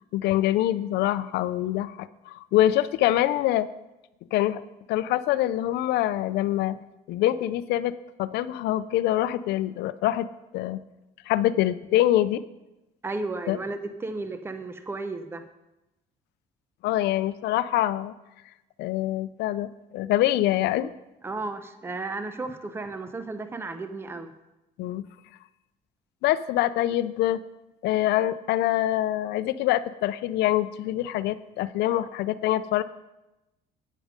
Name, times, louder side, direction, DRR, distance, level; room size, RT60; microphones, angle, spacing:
voice 1, 0.1-3.7 4.3-4.6 4.9-6.8 7.1-7.9 8.2-10.3 10.5-10.8 11.3-12.4 13.5-13.6 16.8-18.1 18.8-20.9 24.8-25.0 26.2-27.4 27.8-32.8, left 14 dB, 80° left, 15 dB, 0.5 m, -25 dB
voice 2, 13.0-15.4 21.2-24.3, right 3 dB, 15° right, 9 dB, 0.7 m, -34 dB
9.4 x 8.8 x 5.1 m, 0.98 s
cardioid pair, 110°, 17 cm